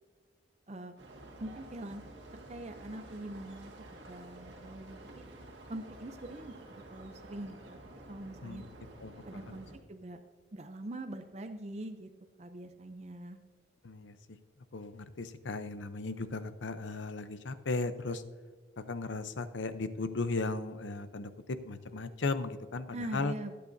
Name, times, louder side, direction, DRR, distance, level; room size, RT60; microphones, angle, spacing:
sound 1, 1.0-9.8, right 1 dB, 70° right, 1.8 m, -51 dB
voice 1, 1.4-2.0 2.5-3.7 4.1-5.2 5.7-6.6 6.9-7.8 8.1-8.6 9.3-10.2 10.5-12.1 12.4-13.4 22.9-23.5, right 1 dB, 35° right, 6 dB, 0.5 m, -43 dB
voice 2, 9.0-9.6 13.8-14.4 14.7-18.2 18.8-23.3, left 3 dB, 75° left, 11 dB, 0.7 m, -36 dB
19.5 x 8.6 x 2.7 m, 1.5 s
head